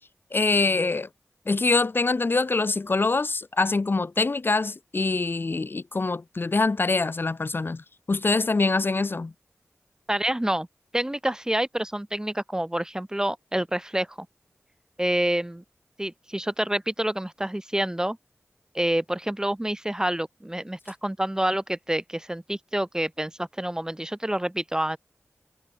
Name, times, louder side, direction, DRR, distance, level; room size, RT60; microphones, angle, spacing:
voice 1, 0.3-1.1 1.5-9.3, left 3 dB, 50° left, 0.9 m, -24 dB
voice 2, 10.1-10.7 10.9-14.3 15.0-15.6 16.0-18.2 18.7-25.0, right 1 dB, 15° right, 3.1 m, -27 dB
wide cardioid pair, 55°, 5 cm